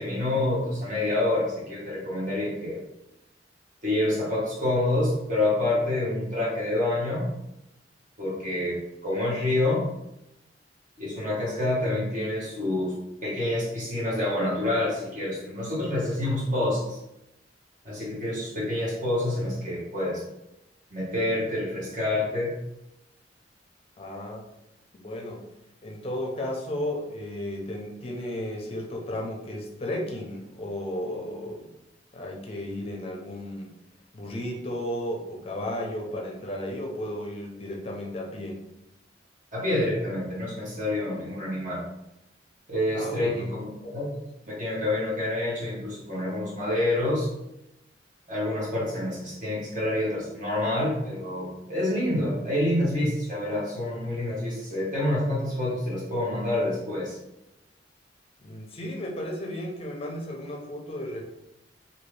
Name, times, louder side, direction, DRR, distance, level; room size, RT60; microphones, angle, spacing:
voice 1, 0.0-2.8 3.8-7.3 8.2-9.8 11.0-12.9 13.2-17.0 17.8-20.2 20.9-22.6 39.5-41.8 42.7-43.7 43.9-44.2 44.5-47.3 48.3-57.2, left 1 dB, 45° right, -7 dB, 1.1 m, -27 dB
voice 2, 24.0-24.4 25.0-25.4 25.8-31.7 32.1-33.7 34.1-38.6 42.9-43.5 58.4-61.2, left 1 dB, 35° left, 0 dB, 0.5 m, -34 dB
2.7 x 2.6 x 3.2 m, 0.88 s
head